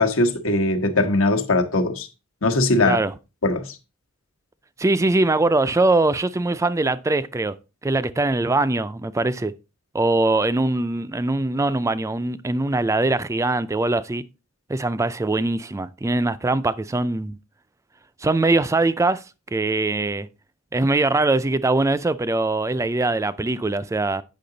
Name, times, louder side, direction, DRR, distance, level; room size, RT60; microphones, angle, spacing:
voice 1, 0.0-2.1 2.4-3.0 3.4-3.8, left 2 dB, 75° left, 1.2 m, -20 dB
voice 2, 4.8-7.5 7.8-9.5 9.9-14.2 14.7-17.4 18.2-19.2 19.5-20.3 20.7-24.2, right 2 dB, 15° right, 0.3 m, -22 dB
8.4 x 5.7 x 3.9 m
head